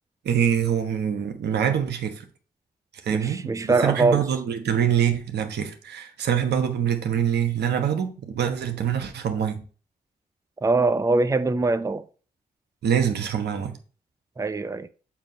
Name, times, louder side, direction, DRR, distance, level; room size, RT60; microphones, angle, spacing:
voice 1, 0.2-2.2 3.0-9.6 12.8-13.7, right 8 dB, 80° right, 1.1 m, -25 dB
voice 2, 3.1-4.2 10.6-12.1 14.4-14.9, right 3 dB, 20° right, 0.5 m, -22 dB
7.3 x 2.8 x 5.3 m
supercardioid pair, 45°, 17 cm